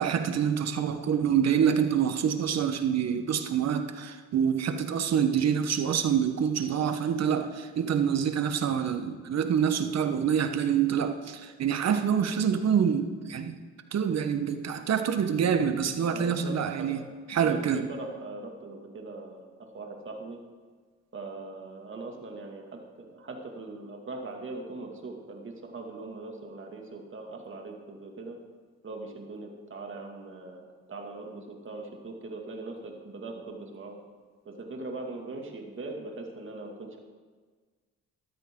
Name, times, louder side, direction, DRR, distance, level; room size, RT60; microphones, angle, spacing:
voice 1, 0.0-13.6 13.9-17.0 17.3-17.8, right 8 dB, 60° right, 8 dB, 1.2 m, -26 dB
voice 2, 16.1-17.1 17.4-20.4 21.1-28.4 28.8-34.0 34.4-37.0, right 3 dB, 40° right, 2 dB, 2.4 m, -41 dB
14.0 x 13.0 x 3.9 m, 1.5 s
cardioid pair, 90°, 30 cm